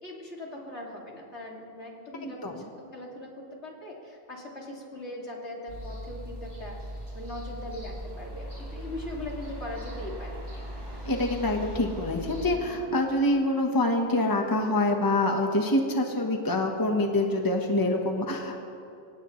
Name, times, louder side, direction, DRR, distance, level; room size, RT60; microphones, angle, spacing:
voice 1, 0.0-10.5 12.5-12.8, left 1 dB, 70° left, -2 dB, 2.9 m, -40 dB
voice 2, 2.2-2.6 11.0-18.6, left 1 dB, 20° left, 2 dB, 1.2 m, -26 dB
sound 1, 5.7-12.6, equal, 40° right, 4.5 m, -39 dB
25.0 x 18.0 x 3.2 m, 2.7 s
omnidirectional pair, 1.2 m